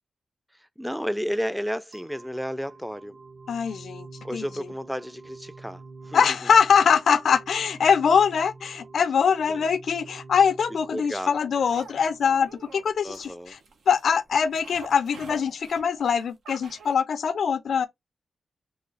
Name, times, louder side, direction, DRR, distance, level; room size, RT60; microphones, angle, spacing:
voice 1, 0.8-3.2 4.2-6.4 9.5-9.6 10.9-11.3 13.0-13.6, equal, 5° right, 0.4 m, -32 dB
sound 1, 1.9-12.9, right 3 dB, 55° right, 1.1 m, -47 dB
voice 2, 3.5-4.7 6.1-13.6 13.9-17.9, left 6 dB, 80° left, 0.4 m, -23 dB
sound 2, 11.5-17.0, right 4 dB, 90° right, 0.7 m, -46 dB
3.0 x 2.3 x 3.8 m
cardioid pair, 55°, 0 cm